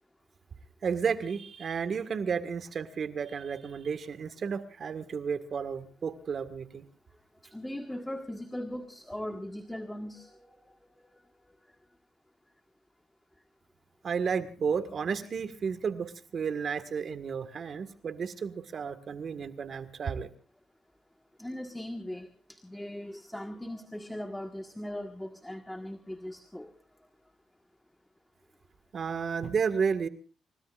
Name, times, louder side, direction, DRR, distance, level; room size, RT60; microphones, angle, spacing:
voice 1, 0.8-6.9 14.0-20.3 28.9-30.1, right 6 dB, 50° right, 11 dB, 1.8 m, -32 dB
voice 2, 7.4-10.5 21.4-26.7, left 1 dB, 5° left, 6 dB, 1.6 m, -39 dB
30.0 x 17.5 x 2.5 m, 0.38 s
cardioid pair, 90°, 0 cm